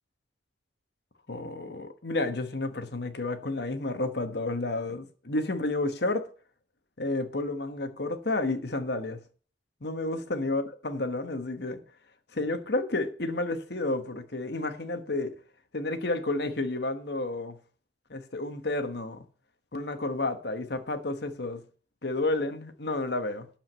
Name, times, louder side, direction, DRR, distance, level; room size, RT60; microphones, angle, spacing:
voice 1, 1.3-6.3 7.0-9.2 9.8-11.8 12.3-15.4 15.7-17.6 18.1-19.2 19.7-21.6 22.0-23.5, left 2 dB, 60° left, 1.3 m, -31 dB
12.5 x 5.0 x 7.9 m
head